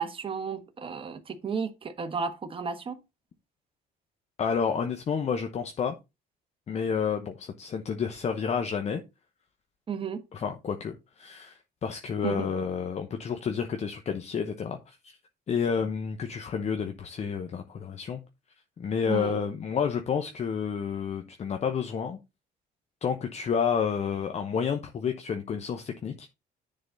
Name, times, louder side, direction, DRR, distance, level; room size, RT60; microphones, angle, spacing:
voice 1, 0.0-3.0 9.9-10.2 12.2-12.5 19.1-19.4, right 6 dB, 30° right, 1.2 m, -33 dB
voice 2, 4.4-5.9 6.7-9.0 10.3-15.1 15.5-18.2 18.8-22.2 23.0-26.3, left 6 dB, 40° left, 0.9 m, -30 dB
9.8 x 4.0 x 3.9 m
cardioid pair, 110°, 17 cm